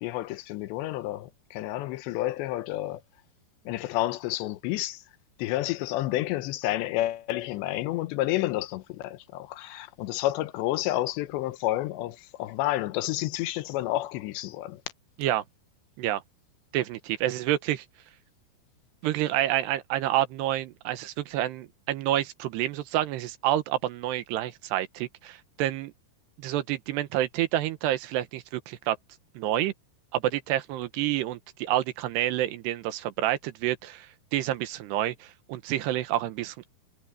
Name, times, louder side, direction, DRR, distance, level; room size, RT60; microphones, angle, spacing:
voice 1, 0.0-3.0 3.7-5.0 5.4-14.8, left 15 dB, 85° left, 3.2 m, -30 dB
voice 2, 16.7-17.8 19.0-25.9 26.4-29.0 29.4-29.7 30.1-34.1 34.3-36.7, right 13 dB, 80° right, 3.1 m, -28 dB
omnidirectional pair, 5.0 m